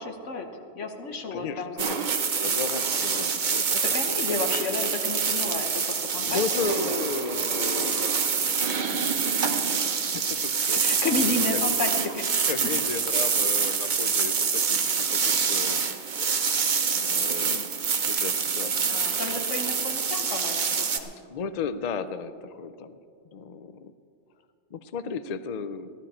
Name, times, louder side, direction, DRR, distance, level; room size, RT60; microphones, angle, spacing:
voice 1, 0.0-1.9 3.8-6.4 6.7-7.0 10.7-12.5 13.6-13.8 18.9-21.1, left 3 dB, 70° left, 5 dB, 1.4 m, -32 dB
voice 2, 1.3-3.9 6.0-8.9 9.8-10.8 12.5-14.9 15.2-15.8 16.2-16.4 16.9-17.7 17.9-18.7 21.3-23.0 23.3-23.9 24.7-25.9, left 5 dB, 55° left, 12 dB, 0.4 m, -35 dB
sound 1, 1.8-21.0, right 6 dB, 45° right, 0.8 m, -26 dB
16.0 x 12.0 x 4.3 m, 2.4 s
omnidirectional pair, 1.3 m